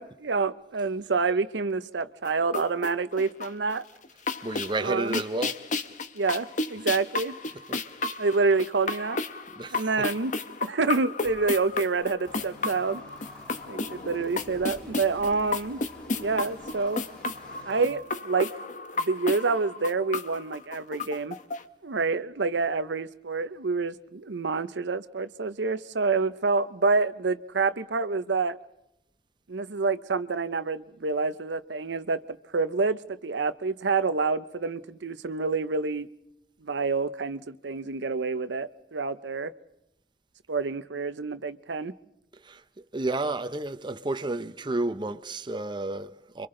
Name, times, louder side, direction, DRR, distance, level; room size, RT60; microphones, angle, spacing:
voice 1, 0.0-3.8 4.8-5.2 6.1-7.4 8.2-9.2 9.7-10.3 10.6-13.0 13.7-15.8 16.2-17.0 17.7-18.5 18.9-21.4 21.8-28.6 29.5-36.1 36.6-39.5 40.5-41.9, right 4 dB, 85° right, 0.7 m, -27 dB
sound 1, 2.2-3.7 4.0-21.6, left 3 dB, 45° left, 1.0 m, -33 dB
voice 2, 4.4-5.6 7.5-7.8 9.6-10.1 42.3-42.6 42.9-46.5, right 2 dB, 25° right, 0.7 m, -31 dB
sound 2, 12.2-17.9, left 1 dB, 5° left, 2.8 m, -50 dB
30.0 x 24.5 x 3.8 m
head